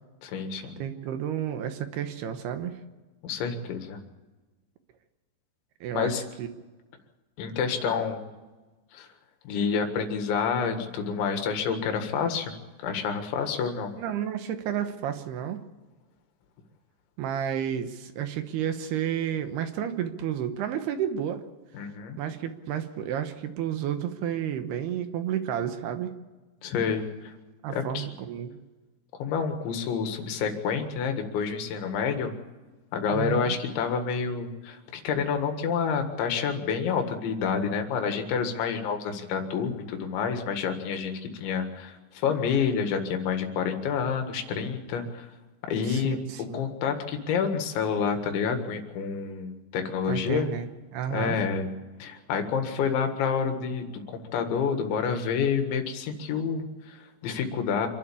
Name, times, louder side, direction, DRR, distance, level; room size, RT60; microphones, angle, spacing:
voice 1, 0.2-0.8 3.2-4.0 5.9-6.2 7.4-8.3 8.9-9.1 9.5-12.5 12.8-13.9 21.7-22.2 26.6-27.3 27.7-28.1 29.2-32.3 32.9-41.1 41.4-45.3 45.7-46.2 46.5-50.5 51.1-51.7 52.0-53.9 54.3-57.9, left 6 dB, 85° left, 6 dB, 4.1 m, -28 dB
voice 2, 0.8-2.7 5.8-6.5 14.0-15.6 17.2-21.4 22.2-26.1 27.6-28.6 33.1-33.5 45.8-46.6 50.1-51.4, right 9 dB, 70° right, 8 dB, 2.9 m, -31 dB
26.5 x 12.0 x 8.5 m, 1.2 s
omnidirectional pair, 5.1 m